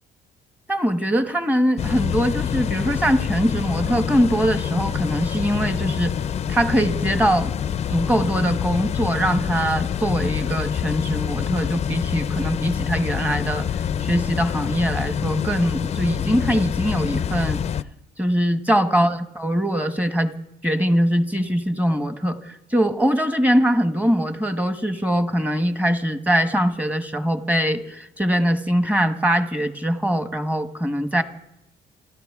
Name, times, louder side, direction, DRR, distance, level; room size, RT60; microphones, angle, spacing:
voice 1, 0.7-6.1 6.5-7.5 7.9-13.6 14.0-17.6 18.2-20.3 20.6-31.2, equal, 10° right, 9 dB, 1.2 m, -22 dB
sound 1, 1.8-17.8, left 8 dB, 40° left, 0.5 m, -26 dB
28.0 x 13.5 x 3.6 m, 0.85 s
cardioid pair, 110°, 17 cm